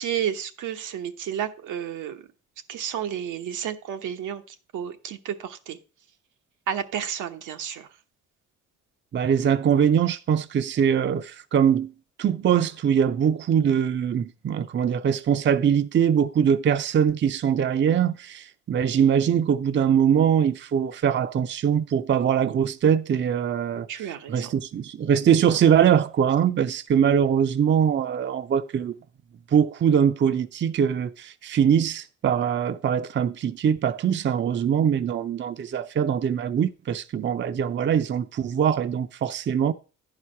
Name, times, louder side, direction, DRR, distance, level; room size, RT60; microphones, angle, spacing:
voice 1, 0.0-2.2 2.7-5.8 6.7-7.9 23.9-24.5, right 9 dB, 80° right, 1.0 m, -31 dB
voice 2, 9.1-11.9 12.2-28.9 29.5-39.7, right 8 dB, 40° right, 0.6 m, -22 dB
10.5 x 4.9 x 5.6 m
cardioid pair, 90°, 30 cm